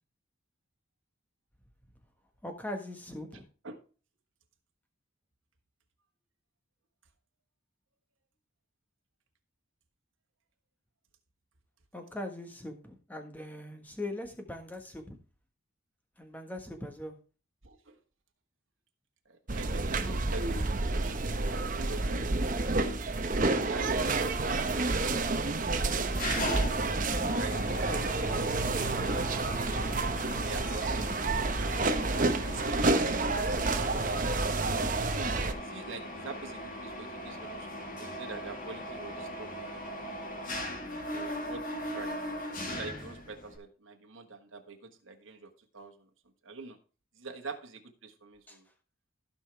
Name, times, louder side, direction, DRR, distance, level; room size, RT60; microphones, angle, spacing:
voice 1, 2.4-3.4 11.9-15.2 16.2-17.2 48.5-48.6, left 1 dB, 10° left, 4 dB, 1.4 m, -40 dB
voice 2, 17.6-18.0 19.2-22.2 25.9-27.0 27.3-27.9 28.6-30.0 30.4-31.8 32.2-34.2 34.8-37.7 38.0-40.2 41.1-46.1 46.4-46.8 47.2-48.7, right 3 dB, 70° right, 4 dB, 1.4 m, -45 dB
sound 1, 19.5-35.5, right 3 dB, 40° right, 0.8 m, -29 dB
Mechanisms, 26.1-43.6, equal, 40° left, 2.0 m, -39 dB
15.5 x 5.5 x 3.4 m, 0.35 s
head